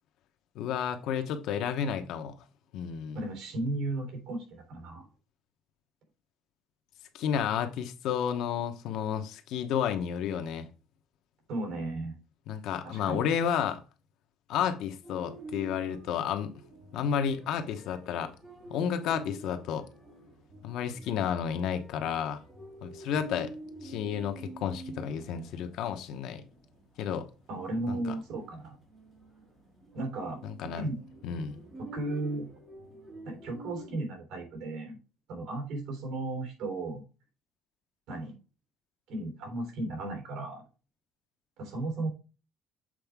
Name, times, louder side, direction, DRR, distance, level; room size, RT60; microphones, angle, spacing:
voice 1, 0.5-2.4 2.7-3.2 7.1-10.7 12.5-13.8 14.5-16.5 16.9-18.3 18.7-19.9 20.6-22.4 22.8-23.5 23.8-26.4 27.0-27.3 27.9-28.1 30.4-30.9 31.2-31.6, left 8 dB, 65° left, 1.0 m, -31 dB
voice 2, 3.1-5.1 11.5-12.1 12.8-13.3 27.5-28.8 29.9-31.0 31.8-32.5 33.3-35.0 35.3-37.0 38.1-38.4 39.1-40.6 41.6-42.1, right 2 dB, 65° right, 3.5 m, -35 dB
sound 1, 15.0-33.9, right 1 dB, 15° right, 2.9 m, -49 dB
7.7 x 4.5 x 3.5 m
cardioid pair, 170°, 0 cm